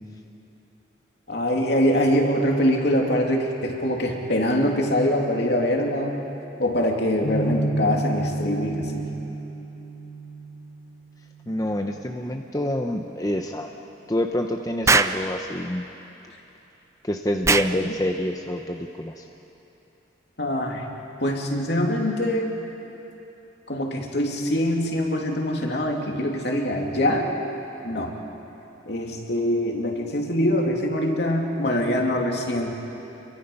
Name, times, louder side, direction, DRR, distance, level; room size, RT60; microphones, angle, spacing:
voice 1, 1.3-6.2 6.6-9.1 20.4-20.8 21.2-22.5 23.7-27.3 27.8-28.2 28.9-32.7, left 1 dB, 60° left, 0 dB, 2.9 m, -23 dB
sound 1, 7.2-13.3, right 2 dB, 85° left, 4.2 m, -32 dB
voice 2, 11.5-13.7 14.1-15.9 17.0-19.3, left 1 dB, 20° left, 3 dB, 0.8 m, -27 dB
Explosion, 14.9-15.2 17.4-17.7, right 3 dB, 15° right, 0.4 m, -19 dB
29.5 x 23.5 x 5.6 m, 3.0 s
head